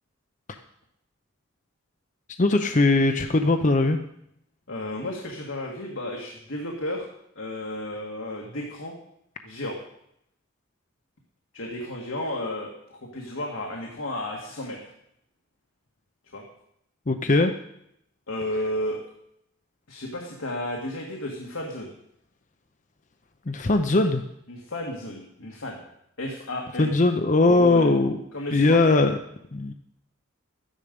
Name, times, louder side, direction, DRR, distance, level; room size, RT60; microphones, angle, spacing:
voice 1, 2.4-4.0 17.1-17.5 23.5-24.2 26.8-28.2 28.5-29.2 29.5-29.7, left 2 dB, 35° left, 7 dB, 0.6 m, -20 dB
voice 2, 4.7-7.1 7.4-8.9 9.4-9.8 11.5-14.8 16.3-16.4 18.3-19.0 19.9-21.9 24.5-25.8 26.2-27.0 27.5-29.0, left 1 dB, 80° left, 0 dB, 1.8 m, -33 dB
13.0 x 10.0 x 5.2 m, 0.77 s
head